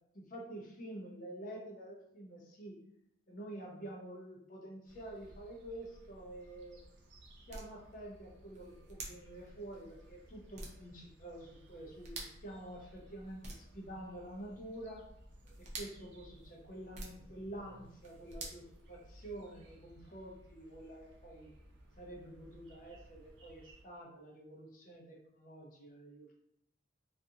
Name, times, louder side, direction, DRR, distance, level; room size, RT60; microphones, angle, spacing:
voice 1, 0.1-2.8 3.3-6.8 7.5-15.1 15.6-21.5 22.0-26.4, right 1 dB, 45° left, -2 dB, 0.6 m, -48 dB
sound 1, 4.8-23.8, right 1 dB, 90° right, 0.5 m, -60 dB
sound 2, 6.3-19.5, right 2 dB, 40° right, 0.5 m, -52 dB
2.5 x 2.4 x 2.7 m, 0.79 s
head